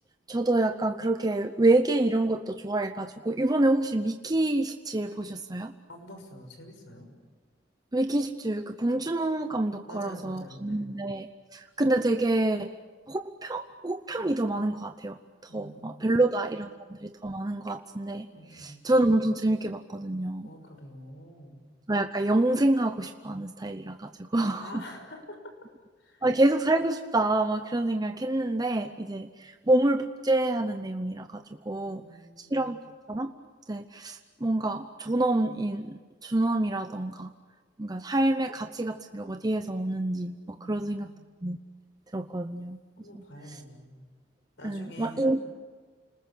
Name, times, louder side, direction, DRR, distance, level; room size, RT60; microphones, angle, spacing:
voice 1, 0.3-5.7 7.9-12.7 13.1-15.2 15.5-20.5 21.9-24.8 26.2-32.0 32.4-32.8 33.1-33.3 33.7-37.3 37.8-41.1 41.4-41.6 42.1-42.8 44.6-45.4, right 2 dB, 20° right, 7 dB, 0.8 m, -27 dB
voice 2, 5.9-7.1 9.9-10.9 15.5-16.2 18.3-18.9 20.4-21.6 24.6-25.5 26.0-26.2 31.7-32.7 40.5-41.3 43.0-44.0 44.6-45.4, equal, 70° left, 5 dB, 6.2 m, -47 dB
29.5 x 20.5 x 8.4 m, 1.5 s
head